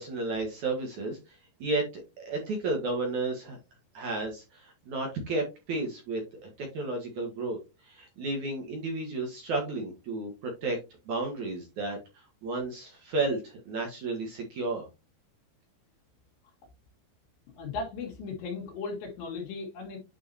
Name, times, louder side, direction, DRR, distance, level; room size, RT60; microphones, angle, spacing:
voice 1, 0.0-3.6 3.9-6.2 6.6-7.6 7.8-10.8 11.1-14.9, right 2 dB, 60° right, 1 dB, 2.0 m, -32 dB
voice 2, 17.6-20.0, left 4 dB, 75° left, -2 dB, 4.0 m, -36 dB
9.3 x 4.7 x 2.8 m, 0.26 s
omnidirectional pair, 5.3 m